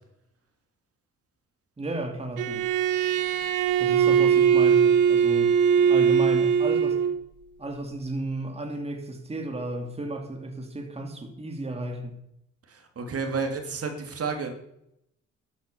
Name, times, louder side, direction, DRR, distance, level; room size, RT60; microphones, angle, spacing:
voice 1, 1.8-2.7 3.8-7.0 7.6-12.2, right 2 dB, 20° right, 2.7 m, -33 dB
Bowed string instrument, 2.4-7.2, right 7 dB, 90° right, 1.4 m, -21 dB
voice 2, 12.7-14.5, right 4 dB, 50° right, 2.8 m, -31 dB
12.5 x 10.5 x 6.9 m
cardioid pair, 90°, 30 cm